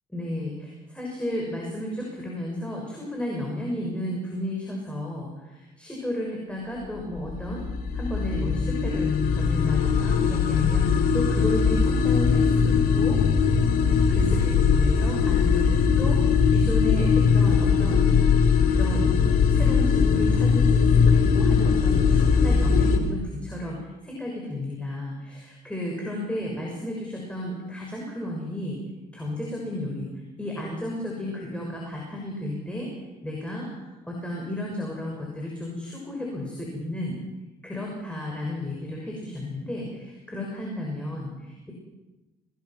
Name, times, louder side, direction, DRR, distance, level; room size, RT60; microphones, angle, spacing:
voice 1, 0.1-7.6 7.9-13.2 14.1-16.2 16.5-18.0 18.7-19.2 19.5-28.8 29.1-30.1 30.4-32.9 33.2-37.2 37.6-41.7, left 1 dB, 5° left, -2 dB, 6.4 m, -33 dB
sound 1, 7.0-23.0, left 6 dB, 60° left, 3.4 m, -20 dB
26.0 x 20.0 x 6.1 m, 1.1 s
cardioid pair, 110°, 17 cm